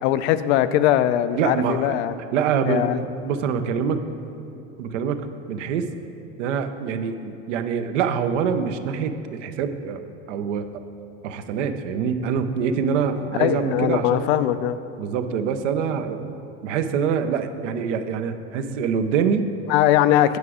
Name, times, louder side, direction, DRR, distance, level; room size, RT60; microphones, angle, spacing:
voice 1, 0.0-2.1 2.7-3.0 13.4-14.8 19.7-20.4, left 12 dB, 70° left, 13 dB, 0.5 m, -20 dB
voice 2, 1.4-2.0 2.3-2.9 3.2-4.0 4.8-5.9 6.4-10.0 10.3-10.7 11.2-14.3 15.0-16.3 16.6-19.5, right 6 dB, 80° right, 9 dB, 0.6 m, -25 dB
8.1 x 4.8 x 4.8 m, 2.8 s
hypercardioid pair, 95°, 36 cm